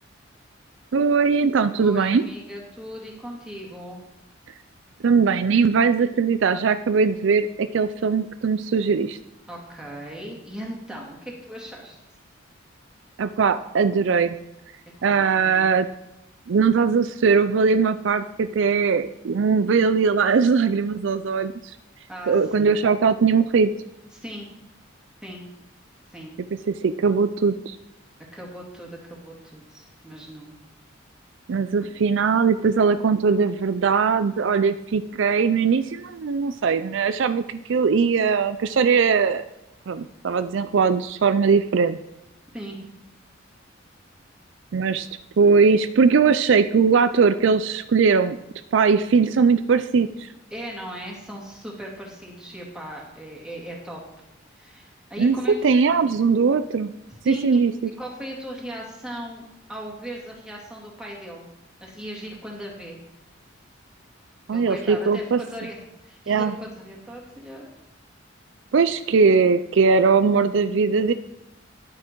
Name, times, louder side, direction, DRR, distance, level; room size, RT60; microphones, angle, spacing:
voice 1, 0.9-2.3 5.0-9.2 13.2-14.4 15.0-15.9 16.5-21.5 22.3-23.7 26.7-27.8 31.5-39.4 39.9-42.0 44.7-45.1 45.4-48.4 48.7-50.3 55.2-55.4 55.6-56.9 57.3-57.9 64.5-65.4 66.3-66.5 68.7-71.1, right 5 dB, 65° right, 11 dB, 0.4 m, -20 dB
voice 2, 1.7-4.0 9.5-12.0 15.0-15.6 22.1-22.7 24.1-24.5 25.2-25.4 26.1-26.3 28.3-30.5 42.5-42.8 50.5-54.0 54.5-55.5 57.2-59.4 59.7-61.4 61.8-63.0 64.5-67.7, equal, 5° right, -2 dB, 2.3 m, -38 dB
11.0 x 8.5 x 4.6 m, 0.88 s
head